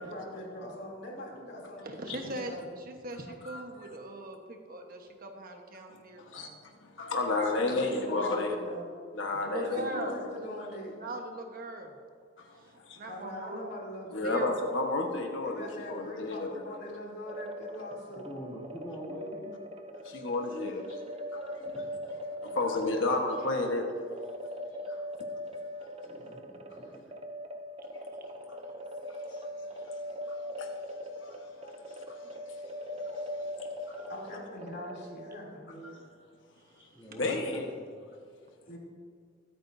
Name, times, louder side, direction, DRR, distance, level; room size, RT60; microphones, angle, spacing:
voice 1, 0.0-2.6 7.4-8.9 9.5-11.0 13.1-14.4 15.4-18.3 32.2-32.3 34.1-36.0 38.7-38.8, equal, 60° left, -3 dB, 3.1 m, -42 dB
voice 2, 1.8-6.6 9.3-10.5 10.9-11.9 12.6-13.6 14.2-14.5, right 1 dB, 50° right, 3 dB, 1.3 m, -40 dB
voice 3, 5.9-6.5 6.8-8.6 9.1-10.2 12.4-13.0 14.1-16.7 20.0-21.0 21.3-21.6 22.5-23.9 24.9-25.0 28.5-28.6 29.1-29.5 29.9-30.0 30.3-30.7 31.1-31.7 32.1-32.2 32.9-33.5 33.9-34.1 35.8-36.0 37.2-37.7, left 2 dB, 75° left, 2 dB, 1.3 m, -32 dB
sound 1, 17.3-35.7, left 1 dB, 30° right, 0.6 m, -41 dB
voice 4, 18.1-19.6 21.5-22.6 26.0-27.1 36.9-37.7, equal, 15° left, -4 dB, 2.4 m, -45 dB
22.5 x 9.0 x 2.7 m, 2.2 s
head